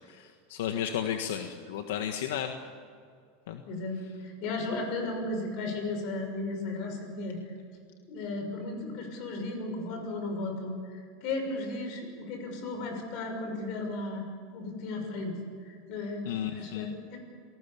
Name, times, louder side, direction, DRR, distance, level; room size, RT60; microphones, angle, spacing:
voice 1, 0.1-2.5 3.5-3.6 16.2-16.9, left 9 dB, 85° left, 6 dB, 1.5 m, -33 dB
voice 2, 3.6-7.5 8.1-17.2, left 2 dB, 50° left, 4 dB, 6.3 m, -35 dB
27.5 x 19.0 x 7.1 m, 2.2 s
supercardioid pair, 165°, 0 cm